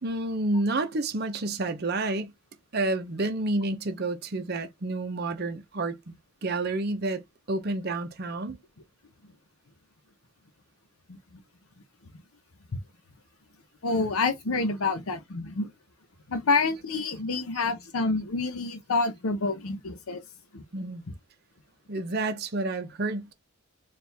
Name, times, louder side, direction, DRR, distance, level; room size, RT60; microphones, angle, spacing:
voice 1, 0.0-2.3 2.7-6.2 6.4-7.2 7.5-8.6 20.7-21.0 21.9-23.3, right 2 dB, 50° right, 0.7 m, -29 dB
voice 2, 13.8-15.7 16.3-20.2 20.5-20.6, left 3 dB, 75° left, 0.7 m, -27 dB
4.4 x 2.5 x 3.3 m
head